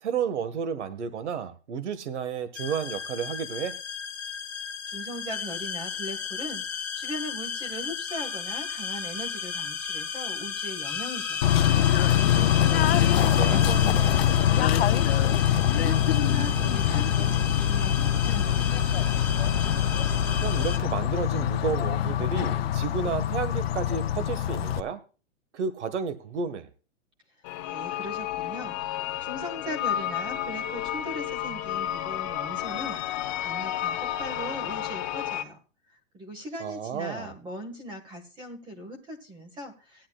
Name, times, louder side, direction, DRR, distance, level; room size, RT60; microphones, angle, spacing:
voice 1, 0.0-3.7 13.1-13.7 20.4-25.0 25.5-26.7 36.6-37.3, right 6 dB, 65° right, 12 dB, 1.7 m, -31 dB
sound 1, 2.6-20.8, left 5 dB, 5° left, 1.3 m, -32 dB
voice 2, 4.9-19.0 27.7-28.8 29.2-35.6 36.1-40.1, equal, 10° right, 6 dB, 1.7 m, -39 dB
Bird / Train, 11.4-24.8, left 11 dB, 55° left, 0.7 m, -24 dB
sound 2, 27.4-35.4, left 12 dB, 25° left, 1.0 m, -31 dB
17.0 x 10.5 x 2.4 m, 0.34 s
hypercardioid pair, 170°, 37 cm